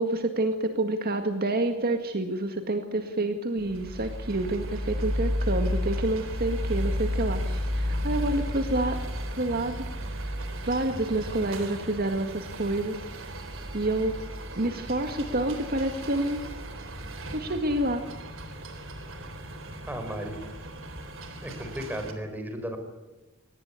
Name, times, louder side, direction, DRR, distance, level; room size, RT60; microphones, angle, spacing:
voice 1, 0.0-9.0 9.4-9.9 10.6-13.1 13.7-14.2 14.6-16.4 17.3-18.0, right 2 dB, 50° right, 6 dB, 2.0 m, -28 dB
sound 1, 3.6-22.1, equal, 70° right, 3.8 m, -33 dB
voice 2, 19.9-20.4 21.4-22.8, equal, 10° right, 5 dB, 4.9 m, -34 dB
24.0 x 19.0 x 8.4 m, 1.1 s
head